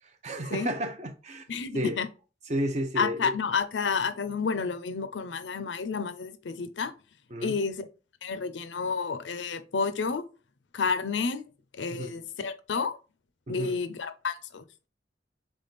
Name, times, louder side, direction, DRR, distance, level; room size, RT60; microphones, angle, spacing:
voice 1, 0.2-1.5 1.7-2.0 2.5-3.4 7.3-7.5 11.9-12.2 13.5-13.8, equal, 40° right, 0.5 m, -32 dB
voice 2, 1.5-2.1 3.0-6.9 7.4-7.9 8.2-10.2 10.7-11.5 11.8-13.0 13.5-14.6, left 5 dB, 90° left, 0.6 m, -30 dB
3.7 x 3.5 x 4.1 m
head